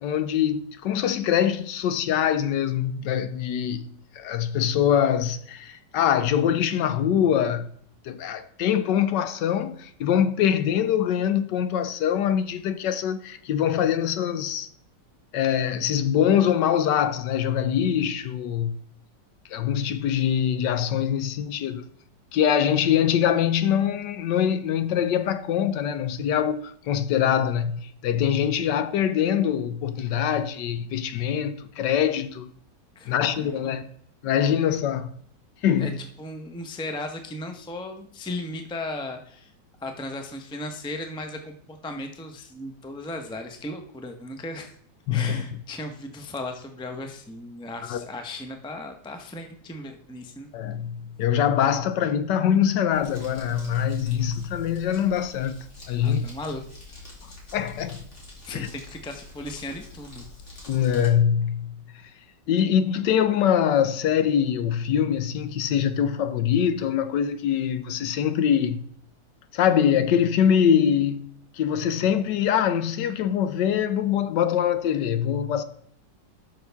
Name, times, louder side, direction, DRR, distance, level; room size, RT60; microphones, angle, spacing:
voice 1, 0.0-7.7 8.0-14.7 15.3-18.8 19.5-21.9 22.3-32.5 33.1-33.8 34.2-35.1 35.6-36.0 45.1-45.4 47.9-48.1 50.5-56.3 57.5-58.0 58.5-58.7 60.7-61.8 62.5-68.8 69.5-75.6, left 9 dB, 75° left, 1.2 m, -23 dB
voice 2, 32.9-33.7 35.8-39.5 39.8-44.8 45.1-50.5 56.0-56.6 56.9-57.1 58.4-60.7, left 2 dB, 5° left, 0.4 m, -36 dB
Crumpling crinkling, 52.9-61.1, left 2 dB, 40° left, 2.9 m, -46 dB
11.5 x 6.3 x 3.5 m
omnidirectional pair, 2.0 m